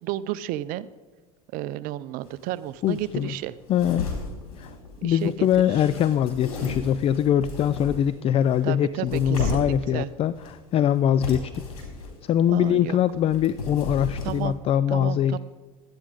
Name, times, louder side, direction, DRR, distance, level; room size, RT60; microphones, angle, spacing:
voice 1, 0.0-0.9 1.5-3.5 5.0-5.5 8.6-10.1 12.5-13.0 14.2-14.5 14.9-15.4, right 14 dB, 50° right, 16 dB, 0.6 m, -32 dB
sound 1, 2.2-2.3 2.6-8.2 8.5-9.9 10.3-10.9 11.2-12.1 12.4-14.5, left 3 dB, 85° left, 3.7 m, -35 dB
voice 2, 2.8-3.3 3.7-4.1 4.6-4.7 5.0-11.5 12.2-15.4, left 10 dB, 35° left, 16 dB, 0.4 m, -23 dB
12.5 x 9.3 x 5.1 m, 1.3 s
hypercardioid pair, 95°, 18 cm